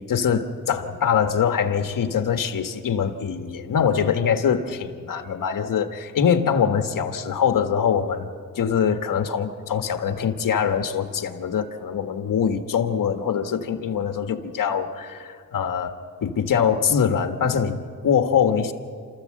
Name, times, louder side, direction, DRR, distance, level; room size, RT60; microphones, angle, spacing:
voice 1, 0.1-8.3 8.6-18.7, left 7 dB, 75° left, 6 dB, 1.6 m, -23 dB
29.0 x 14.0 x 7.8 m, 2.1 s
cardioid pair, 95°, 33 cm